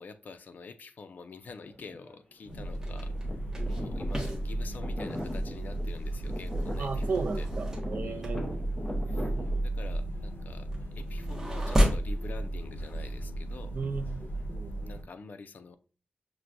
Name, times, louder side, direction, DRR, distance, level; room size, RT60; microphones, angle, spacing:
voice 1, 0.0-3.1 3.7-7.5 8.0-8.3 9.1-9.3 9.6-10.7 10.9-13.7 14.8-15.8, left 4 dB, 55° left, 0.3 m, -47 dB
sound 1, 1.7-2.2 2.4-9.6, left 1 dB, 15° left, 0.7 m, -41 dB
sound 2, 2.5-15.0, right 1 dB, 85° left, 1.1 m, -34 dB
sound 3, 2.5-12.2, equal, 15° right, 0.8 m, -34 dB
voice 2, 6.8-8.6 13.7-14.7, right 4 dB, 60° right, 0.4 m, -35 dB
5.9 x 2.2 x 2.5 m
wide cardioid pair, 175°, 3 cm